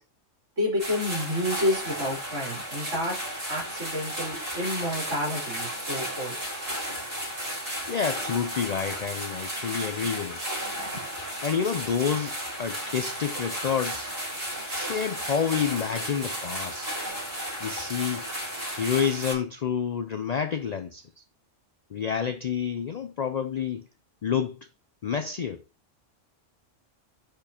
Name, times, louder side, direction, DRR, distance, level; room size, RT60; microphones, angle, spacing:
voice 1, 0.6-3.1 3.5-6.4, left 1 dB, 75° right, 3.7 m, -29 dB
sound 1, 0.8-19.3, equal, 45° right, 4.4 m, -34 dB
voice 2, 7.9-10.4 11.4-14.1 14.6-16.9 17.6-18.3 18.8-21.2 21.9-23.9 24.2-24.6 25.0-25.6, left 7 dB, 75° left, 0.3 m, -29 dB
10.0 x 4.4 x 2.8 m
omnidirectional pair, 1.3 m